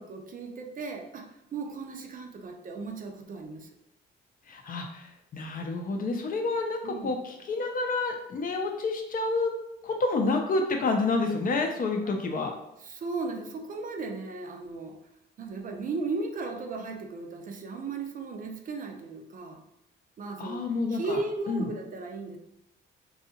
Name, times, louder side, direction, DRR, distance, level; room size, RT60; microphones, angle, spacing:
voice 1, 0.0-3.7 6.8-7.2 12.8-15.0 15.4-19.6 20.2-20.6 20.9-22.4, right 3 dB, 45° right, 3 dB, 0.5 m, -36 dB
voice 2, 4.5-9.5 9.8-12.5 20.4-21.2 21.5-21.7, left 3 dB, 45° left, 3 dB, 0.5 m, -29 dB
2.7 x 2.3 x 2.7 m, 0.84 s
cardioid pair, 90°, 20 cm